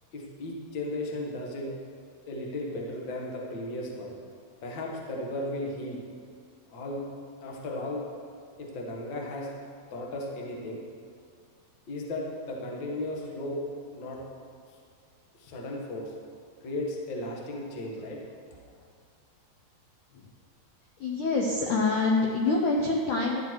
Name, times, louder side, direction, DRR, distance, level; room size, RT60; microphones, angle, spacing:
voice 1, 0.1-1.7 2.3-4.2 4.6-6.0 6.7-7.0 7.4-8.0 8.6-9.5 9.9-10.8 11.9-13.6 13.9-14.2 15.3-16.1 16.6-18.2, left 1 dB, 70° left, -2 dB, 1.1 m, -35 dB
voice 2, 21.0-23.4, left 3 dB, 90° left, 0 dB, 1.7 m, -26 dB
13.0 x 10.0 x 4.7 m, 2.3 s
omnidirectional pair, 5.0 m